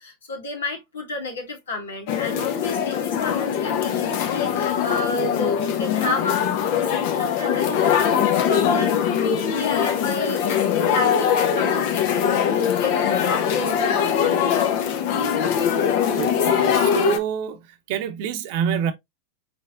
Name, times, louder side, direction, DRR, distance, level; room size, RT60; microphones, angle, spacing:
voice 1, 0.0-14.5, left 3 dB, 80° left, 2.1 m, -32 dB
sound 1, 2.1-17.2, left 8 dB, 60° left, 0.9 m, -22 dB
voice 2, 16.2-17.6 17.9-18.9, right 9 dB, 60° right, 0.9 m, -26 dB
4.6 x 4.4 x 2.5 m
hypercardioid pair, 95°, 0 cm